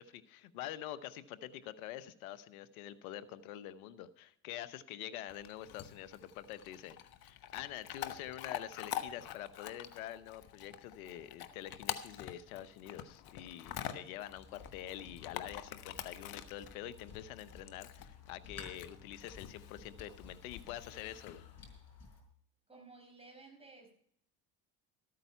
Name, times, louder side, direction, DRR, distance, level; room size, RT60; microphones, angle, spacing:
voice 1, 0.0-7.0 7.2-21.4, left 12 dB, 90° left, 15 dB, 0.9 m, -46 dB
Chewing mastication / Dog, 5.3-21.8, left 10 dB, 60° left, 1.2 m, -47 dB
sound 1, 14.3-22.2, left 5 dB, 35° left, 5.3 m, -55 dB
voice 2, 22.7-23.9, right 3 dB, 15° right, 3 dB, 5.5 m, -55 dB
13.5 x 9.0 x 5.6 m, 0.64 s
supercardioid pair, 80°, 42 cm